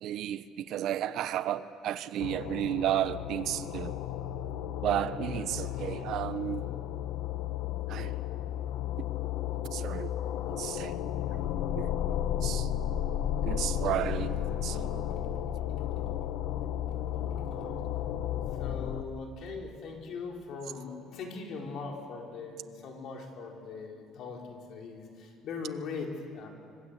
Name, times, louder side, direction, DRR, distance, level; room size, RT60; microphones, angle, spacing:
voice 1, 0.0-3.9 4.8-6.6 7.9-8.1 9.7-10.1 10.5-11.0 11.3-11.4 11.7-11.9 12.4-12.7 13.4-15.0, right 11 dB, 60° right, 1.0 m, -33 dB
sound 1, 2.2-19.0, left 10 dB, 80° left, 1.2 m, -33 dB
voice 2, 5.4-5.7 6.0-6.1 17.5-17.8 18.6-26.5, left 4 dB, 55° left, 4.8 m, -41 dB
26.0 x 24.5 x 8.4 m
cardioid pair, 140°, 0 cm